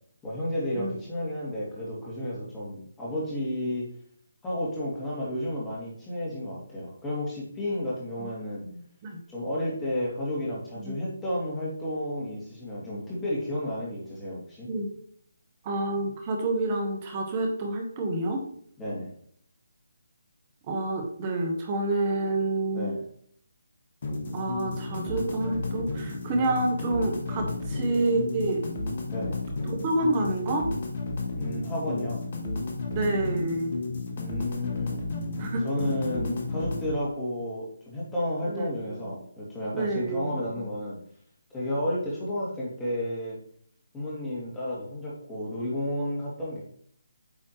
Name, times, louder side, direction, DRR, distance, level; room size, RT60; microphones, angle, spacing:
voice 1, 0.2-3.9 4.4-8.6 9.3-14.7 18.8-19.1 22.7-23.0 29.1-29.4 31.4-32.2 34.2-35.0 35.6-41.0 41.5-43.4 43.9-46.6, left 1 dB, 10° left, -7 dB, 2.6 m, -32 dB
voice 2, 8.6-9.2 10.8-11.0 14.7-14.9 15.6-18.4 20.7-22.9 24.3-28.6 29.6-30.7 32.9-33.8 35.4-35.6 38.4-39.1 39.7-40.5, right 2 dB, 25° right, 2 dB, 1.5 m, -28 dB
sound 1, 24.0-36.9, left 2 dB, 45° left, 1.6 m, -32 dB
9.0 x 4.2 x 3.2 m, 0.63 s
figure-of-eight pair, 150°, 0 cm